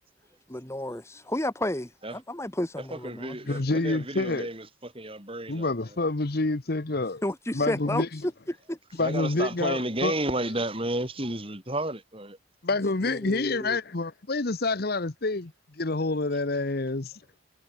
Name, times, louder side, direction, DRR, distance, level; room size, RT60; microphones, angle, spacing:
voice 1, 0.5-3.3 7.2-8.8 13.0-13.8, left 1 dB, 15° left, 1.4 m, -32 dB
voice 2, 2.8-6.0 9.0-12.4, right 1 dB, 25° right, 6.9 m, -32 dB
voice 3, 3.5-4.5 5.5-7.2 7.5-8.2 9.0-10.1 12.6-15.5 15.8-17.1, left 2 dB, 50° left, 1.0 m, -27 dB
head